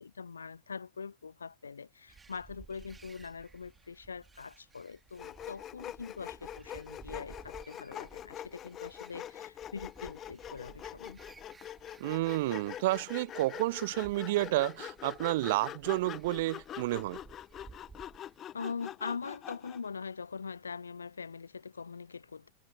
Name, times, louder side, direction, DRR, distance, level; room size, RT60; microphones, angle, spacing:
voice 1, 0.0-11.2 18.5-22.5, left 5 dB, 75° left, 0.8 m, -43 dB
sound 1, 2.1-18.4, right 4 dB, 15° right, 3.3 m, -57 dB
Sawing, 5.2-19.9, left 11 dB, 30° left, 1.9 m, -44 dB
voice 2, 12.0-17.2, right 18 dB, 50° right, 0.5 m, -30 dB
figure-of-eight pair, 90°, 0 cm